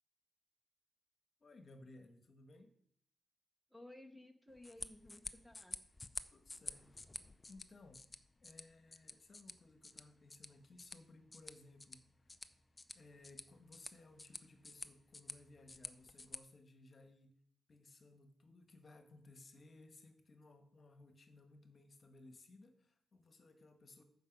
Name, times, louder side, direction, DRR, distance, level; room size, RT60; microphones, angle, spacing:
voice 1, 1.4-2.7 4.8-4.9 6.3-6.9 7.1-8.0 8.4-12.3 12.9-17.3 17.7-24.0, left 2 dB, 35° left, 7 dB, 1.2 m, -60 dB
voice 2, 3.7-5.8, left 1 dB, ahead, 5 dB, 0.9 m, -57 dB
sound 1, 4.5-16.4, left 3 dB, 20° left, 0.5 m, -51 dB
14.0 x 5.5 x 5.2 m, 0.65 s
wide cardioid pair, 145°, 0 cm